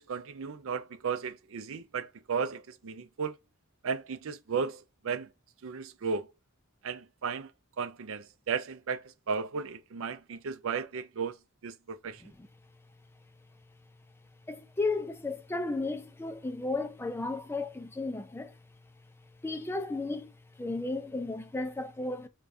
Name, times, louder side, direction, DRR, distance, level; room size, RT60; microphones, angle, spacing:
voice 1, 0.0-3.4 3.8-5.3 5.6-6.3 6.8-7.5 7.8-11.4 11.6-12.2, right 5 dB, 70° right, 0.5 m, -35 dB
voice 2, 14.5-18.5 19.4-20.3 20.6-22.3, left 2 dB, 10° left, 0.4 m, -34 dB
4.9 x 2.3 x 2.6 m
head